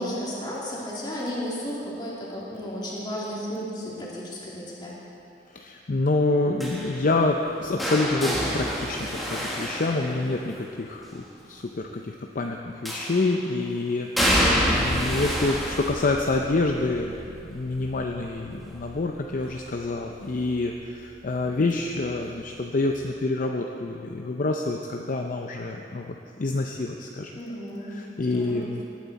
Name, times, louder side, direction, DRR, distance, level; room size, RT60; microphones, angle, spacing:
voice 1, 0.0-5.0 27.3-28.7, equal, 25° left, -5 dB, 2.5 m, -33 dB
voice 2, 5.5-17.1 17.5-27.3 27.9-28.8, left 2 dB, 50° left, 2 dB, 0.6 m, -27 dB
sound 1, 6.6-10.6 12.8-13.4 14.2-20.0 20.3-20.7 22.0-22.1, equal, ahead, 1.8 m, -28 dB
18.0 x 9.3 x 4.1 m, 2.7 s
head